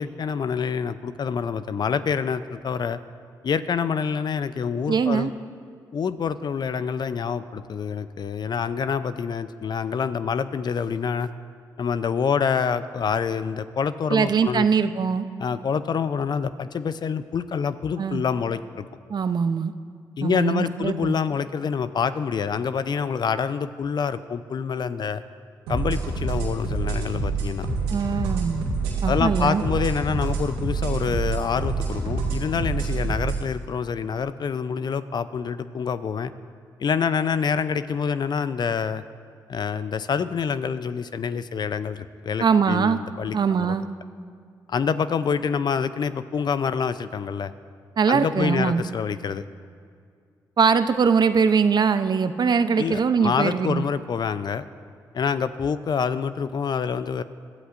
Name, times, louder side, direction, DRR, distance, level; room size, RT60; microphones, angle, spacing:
voice 1, 0.0-3.0 3.4-5.3 5.9-11.3 11.8-14.7 15.4-18.9 20.2-25.2 25.7-27.7 29.1-36.3 36.8-39.0 39.5-43.8 44.7-47.5 48.1-49.4 52.8-54.7 55.1-57.2, left 6 dB, 50° left, 13 dB, 0.6 m, -26 dB
voice 2, 4.9-5.3 14.1-15.3 18.0-18.2 19.1-19.7 20.2-21.1 27.9-28.6 29.0-29.6 42.4-43.0 43.3-43.9 48.0-48.8 50.6-53.8, right 6 dB, 50° right, 11 dB, 0.7 m, -22 dB
sound 1, 25.7-33.4, right 3 dB, 90° right, 2.1 m, -27 dB
21.0 x 13.0 x 2.6 m, 2.2 s
hypercardioid pair, 45°, 9 cm